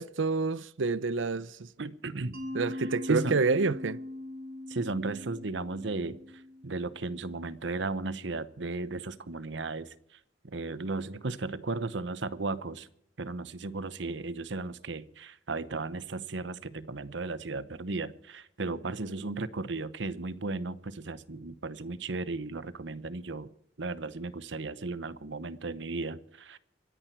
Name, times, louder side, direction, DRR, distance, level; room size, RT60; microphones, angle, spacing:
voice 1, 0.0-1.7 2.5-4.0, right 4 dB, 85° right, 0.7 m, -28 dB
voice 2, 1.8-2.4 2.8-3.4 4.7-10.2 10.4-12.9 13.2-23.5 23.8-26.6, right 3 dB, 65° right, 0.9 m, -35 dB
Mallet percussion, 2.3-7.1, left 1 dB, 50° right, 4.2 m, -41 dB
25.0 x 10.0 x 4.6 m
head